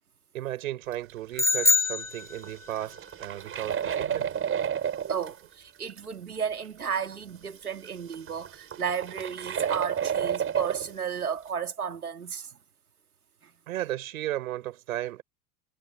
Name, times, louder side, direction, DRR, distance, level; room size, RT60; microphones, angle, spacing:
voice 1, 0.3-4.4 13.7-15.2, right 14 dB, 70° right, 6.7 m, -35 dB
sound 1, 0.9-1.1 1.4-1.5 2.3-5.3 6.0-6.1 6.7-6.8 7.8-10.9, right 8 dB, 30° right, 4.0 m, -31 dB
sound 2, 1.4-2.8, left 3 dB, 5° left, 1.6 m, -24 dB
voice 2, 5.1-12.6 13.4-13.5, right 7 dB, 85° right, 3.0 m, -33 dB
figure-of-eight pair, 85°, 44 cm